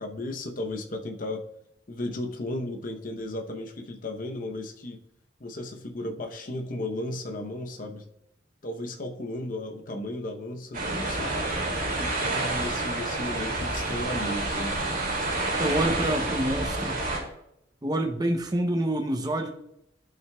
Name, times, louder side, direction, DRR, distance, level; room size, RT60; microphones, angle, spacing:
voice 1, 0.0-1.4 1.9-5.0 5.4-8.0 8.6-11.3 11.8-14.8, left 1 dB, 45° left, 4 dB, 0.7 m, -35 dB
sound 1, 10.7-17.2, right 2 dB, 45° right, 2.4 m, -29 dB
voice 2, 15.6-17.0 17.8-19.5, right 1 dB, 20° right, 3 dB, 0.6 m, -27 dB
12.5 x 5.8 x 2.2 m, 0.79 s
head